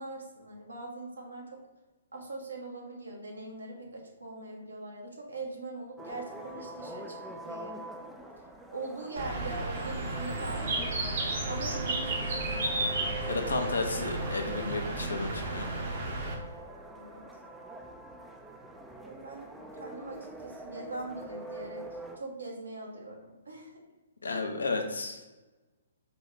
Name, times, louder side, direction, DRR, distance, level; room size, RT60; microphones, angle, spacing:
voice 1, 0.0-1.5 2.1-7.2 7.4-7.8 8.7-11.0 11.5-13.2 17.0-17.2 19.0-23.7, right 2 dB, 75° right, 0 dB, 1.0 m, -42 dB
sound 1, 6.0-22.2, right 1 dB, 5° right, 0.4 m, -44 dB
Bird, 9.2-16.3, right 2 dB, 50° right, 0.9 m, -33 dB
voice 2, 13.3-15.7 24.2-25.3, left 3 dB, 70° left, 4 dB, 0.7 m, -32 dB
4.1 x 2.3 x 4.6 m, 1.2 s
figure-of-eight pair, 125°, 0 cm